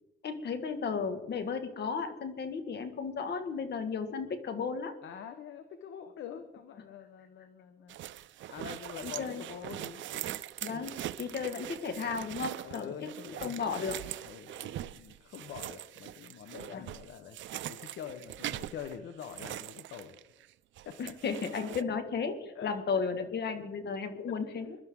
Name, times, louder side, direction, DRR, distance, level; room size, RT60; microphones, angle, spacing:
voice 1, 0.2-4.9 9.0-9.4 10.6-12.9 13.2-14.0 16.7-16.9 21.0-24.8, left 5 dB, 55° left, 8 dB, 1.9 m, -34 dB
voice 2, 5.0-8.0 8.5-10.4 11.4-11.7 12.6-13.8 14.2-20.2 20.8-21.2 22.5-23.0 24.3-24.4, left 8 dB, 75° left, 8 dB, 1.2 m, -45 dB
sound 1, 7.9-20.5 20.8-21.8, right 13 dB, 70° right, 0.5 m, -42 dB
22.5 x 11.5 x 3.8 m, 0.96 s
cardioid pair, 90°, 20 cm